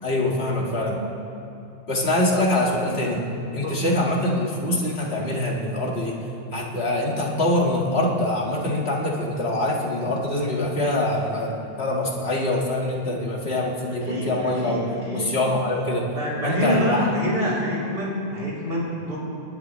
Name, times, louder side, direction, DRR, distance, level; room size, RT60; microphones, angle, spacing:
voice 1, 0.0-1.0 1.9-3.3 3.5-6.2 6.5-14.8 15.1-16.1 16.4-17.1, left 1 dB, 70° left, -2 dB, 2.2 m, -24 dB
voice 2, 14.0-15.3 15.8-15.9 16.1-19.2, equal, 60° right, -7 dB, 4.0 m, -26 dB
28.0 x 11.5 x 3.2 m, 2.7 s
omnidirectional pair, 1.1 m